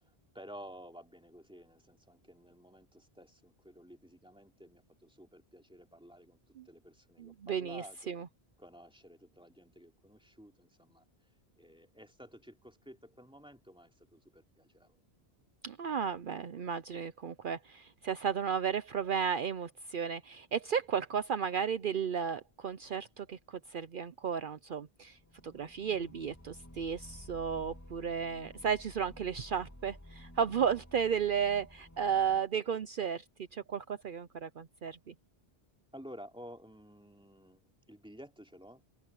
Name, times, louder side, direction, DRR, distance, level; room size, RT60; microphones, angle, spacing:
voice 1, 0.0-6.4 6.6-8.1 8.6-11.0 11.6-15.0 30.6-30.7 35.9-39.0, equal, 5° right, 3.1 m, -53 dB
voice 2, 7.2-8.3 15.6-25.2 25.4-33.2 33.5-35.1, right 7 dB, 60° right, 0.8 m, -34 dB
sound 1, 25.0-32.4, left 1 dB, 15° left, 2.1 m, -53 dB
open air
omnidirectional pair, 1.1 m